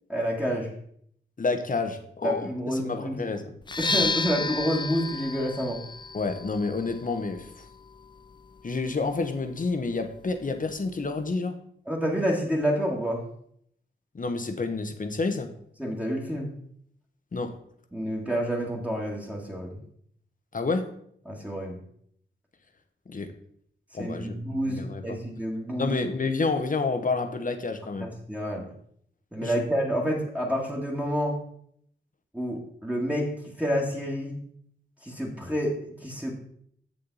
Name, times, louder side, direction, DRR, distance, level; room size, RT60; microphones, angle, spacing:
voice 1, 0.1-0.7 2.2-3.2 3.8-5.8 11.9-13.2 15.8-16.5 17.9-19.8 21.3-21.8 24.0-26.0 28.0-28.7 29.3-31.4 32.3-33.3 33.6-34.4 35.0-36.3, equal, 5° right, -3 dB, 1.9 m, -28 dB
voice 2, 1.4-3.5 6.1-7.6 8.6-11.6 14.1-15.5 17.3-17.6 20.5-20.9 23.1-23.3 23.9-24.4 24.7-25.2 25.8-28.1 29.4-29.6, left 3 dB, 40° left, 7 dB, 1.0 m, -29 dB
sound 1, 3.6-11.4, left 4 dB, 20° left, 0.4 m, -34 dB
7.4 x 7.0 x 4.0 m, 0.68 s
cardioid pair, 75°, 21 cm